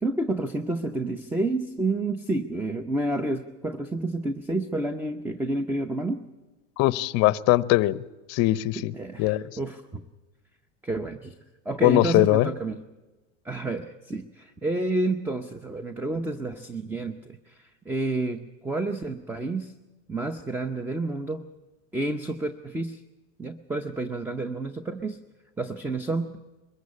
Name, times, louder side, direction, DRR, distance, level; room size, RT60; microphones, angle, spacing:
voice 1, 0.0-6.2 8.8-10.0 10.8-11.4 11.7-12.8 13.4-19.7 20.1-21.5 21.9-23.0 23.4-25.2 25.6-26.3, right 2 dB, 5° right, 9 dB, 0.7 m, -30 dB
voice 2, 6.8-8.0 8.3-8.9 9.2-9.4 11.8-12.5, left 17 dB, 45° left, 18 dB, 0.7 m, -21 dB
22.0 x 15.0 x 8.5 m, 1.2 s
supercardioid pair, 135°, 37 cm